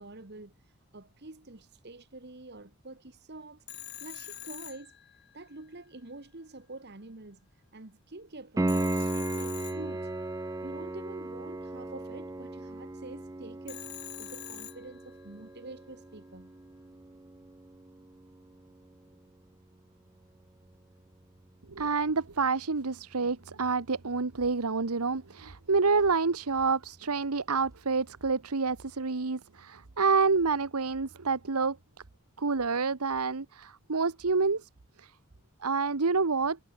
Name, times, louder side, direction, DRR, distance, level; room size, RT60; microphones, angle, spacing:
voice 1, 0.0-3.6 4.0-5.0 5.3-7.4 7.7-10.1 10.6-13.8 14.2-16.5, right 2 dB, 50° right, 1.5 m, -47 dB
Telephone, 3.7-5.6 8.7-10.5 13.7-15.3, left 14 dB, 50° left, 4.4 m, -45 dB
Piano, 8.6-19.2 22.5-22.6, right 2 dB, 15° right, 0.4 m, -36 dB
voice 2, 21.7-31.8 32.4-34.7 35.0-35.1 35.6-36.6, right 4 dB, 85° right, 1.1 m, -28 dB
head